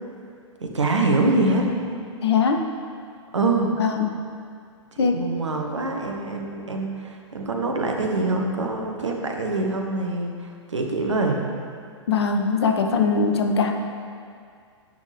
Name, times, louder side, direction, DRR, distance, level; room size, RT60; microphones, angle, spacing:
voice 1, 0.6-1.7 3.3-3.7 5.0-11.4, right 2 dB, 70° right, 2 dB, 1.3 m, -24 dB
voice 2, 2.2-2.6 3.8-4.1 5.0-5.2 12.1-13.7, left 5 dB, 60° left, 4 dB, 0.9 m, -21 dB
10.5 x 7.5 x 3.4 m, 2.2 s
figure-of-eight pair, 110°, 16 cm